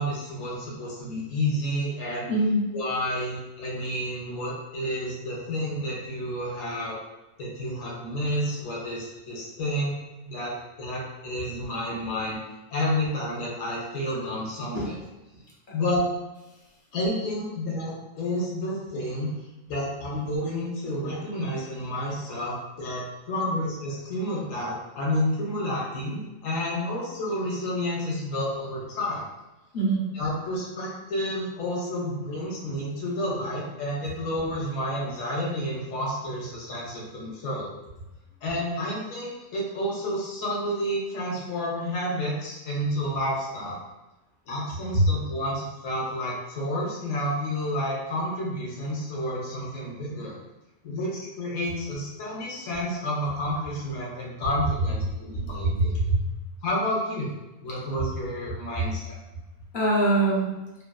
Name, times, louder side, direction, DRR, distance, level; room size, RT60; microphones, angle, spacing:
voice 1, 0.0-2.3 2.7-7.0 7.4-10.0 10.2-12.4 12.7-15.0 15.7-16.0 16.9-19.3 19.7-29.2 30.1-37.7 38.4-43.8 44.5-50.4 50.8-56.0 56.6-57.3 57.6-59.2, left 1 dB, 70° left, -4 dB, 1.0 m, -30 dB
voice 2, 2.3-2.7 14.7-15.0 15.7-15.8 29.7-30.0 44.9-45.1 55.6-56.2 59.7-60.5, right 2 dB, 45° left, -5 dB, 0.7 m, -23 dB
2.9 x 2.4 x 2.3 m, 1.0 s
omnidirectional pair, 1.5 m